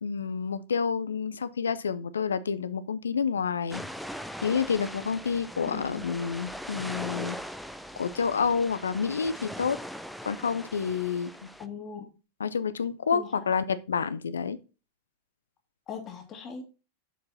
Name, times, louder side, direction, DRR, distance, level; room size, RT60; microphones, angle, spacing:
voice 1, 0.0-3.8 4.4-7.4 8.0-9.8 10.3-11.3 12.4-14.6, left 6 dB, 70° left, 0.5 m, -29 dB
sound 1, 3.7-11.7, equal, ahead, 0.5 m, -40 dB
voice 2, 5.7-6.1 11.6-12.1 13.1-13.5 15.9-16.6, left 6 dB, 30° left, 1.8 m, -40 dB
7.0 x 4.7 x 4.2 m
figure-of-eight pair, 90°, 0 cm